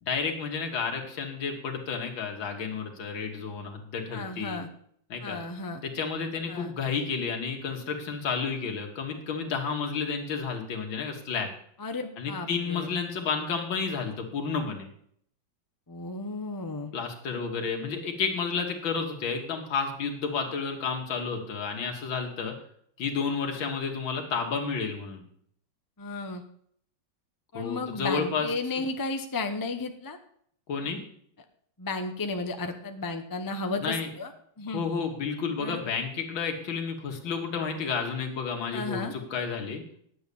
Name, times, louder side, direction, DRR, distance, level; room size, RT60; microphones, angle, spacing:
voice 1, 0.0-4.6 5.1-5.4 5.8-11.5 12.2-14.9 16.9-22.6 23.0-25.2 27.5-28.5 30.7-31.0 33.8-34.1 34.7-39.8, left 5 dB, 75° left, 2 dB, 2.4 m, -31 dB
voice 2, 4.1-4.7 5.2-5.8 6.5-6.7 11.8-12.9 15.9-16.9 26.0-26.4 27.5-30.2 31.8-34.3 34.6-34.8 35.6-35.8 38.7-39.1, left 3 dB, 30° left, 6 dB, 0.4 m, -33 dB
9.8 x 8.0 x 6.9 m, 0.65 s
omnidirectional pair, 2.1 m